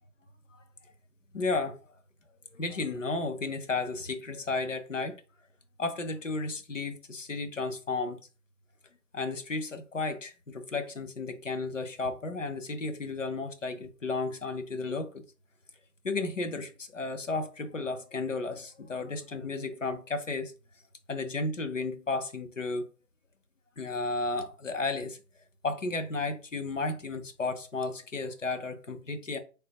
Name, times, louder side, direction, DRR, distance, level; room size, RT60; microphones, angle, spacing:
voice 1, 1.3-1.8 2.5-5.2 5.8-8.2 9.1-15.2 16.0-20.5 21.1-22.9 23.8-25.2 25.6-29.4, left 3 dB, 50° left, 0.6 m, -33 dB
4.3 x 3.3 x 2.9 m
figure-of-eight pair, 175°, 48 cm